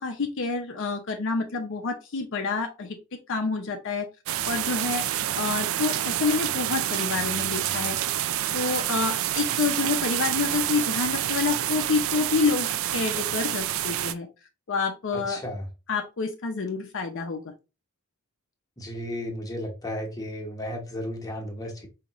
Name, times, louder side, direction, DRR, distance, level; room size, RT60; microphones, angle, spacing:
voice 1, 0.0-3.0 3.3-4.1 4.4-5.0 5.3-8.0 8.5-14.3 14.7-15.4 15.9-17.5, left 4 dB, 60° left, 0.6 m, -28 dB
sound 1, 4.3-14.1, right 12 dB, 60° right, 0.3 m, -28 dB
voice 2, 15.1-15.6 18.8-21.9, left 1 dB, 15° left, 1.1 m, -34 dB
5.1 x 2.8 x 2.9 m
head